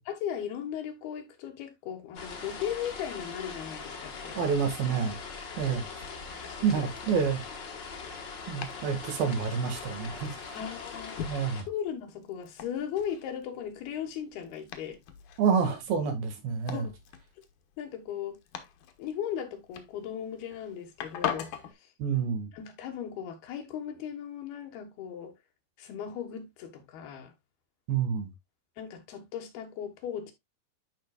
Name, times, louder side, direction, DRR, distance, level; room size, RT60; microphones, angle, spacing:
voice 1, 0.1-4.5 6.4-6.9 10.5-11.2 11.7-15.0 16.7-16.9 17.8-18.4 19.0-21.5 22.5-25.3 25.8-27.3 28.8-30.3, left 9 dB, 85° left, 3.5 m, -37 dB
sound 1, 2.1-11.6, left 5 dB, 50° left, 1.4 m, -41 dB
voice 2, 4.4-5.2 5.6-5.9 6.6-7.4 8.5-10.3 11.2-11.7 15.4-16.9 22.0-22.5 27.9-28.3, right 6 dB, 75° right, 3.7 m, -28 dB
Domestic sounds home sounds, 6.2-21.7, left 9 dB, 65° left, 2.3 m, -43 dB
11.5 x 5.2 x 2.3 m
omnidirectional pair, 4.3 m